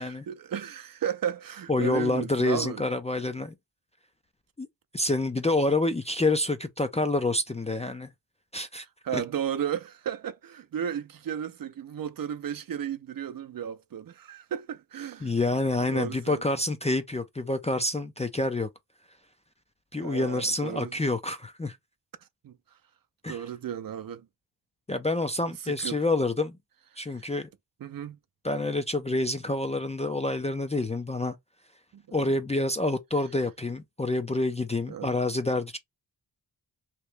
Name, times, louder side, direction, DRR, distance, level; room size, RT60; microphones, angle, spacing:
voice 1, 0.0-2.8 9.0-15.3 15.9-16.4 20.0-20.9 22.4-22.5 23.3-24.2 25.6-26.0 27.2-27.3 27.8-28.2 31.9-32.2 34.9-35.1, right 9 dB, 55° right, 0.5 m, -34 dB
voice 2, 1.7-3.5 4.6-4.7 4.9-8.1 8.5-8.9 9.1-9.2 15.2-18.7 19.9-21.8 23.2-23.4 24.9-26.6 27.0-27.5 28.4-31.4 32.1-35.8, left 2 dB, 15° left, 0.3 m, -27 dB
3.0 x 2.9 x 3.2 m
wide cardioid pair, 135°, 42 cm